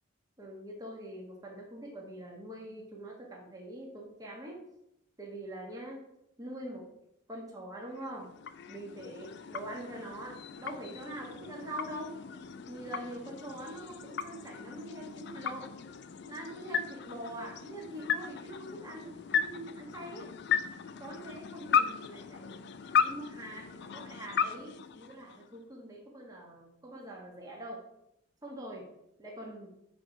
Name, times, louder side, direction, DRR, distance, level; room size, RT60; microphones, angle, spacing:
voice 1, 0.4-4.6 5.2-6.1 6.4-6.8 7.3-8.3 8.7-12.2 12.7-15.7 16.2-20.3 21.0-22.6 23.0-27.8 28.4-28.9 29.2-29.7, right 1 dB, 20° right, -2 dB, 1.3 m, -44 dB
sound 1, 7.9-25.7, left 7 dB, 60° left, 0.4 m, -36 dB
9.3 x 3.4 x 5.0 m, 0.82 s
head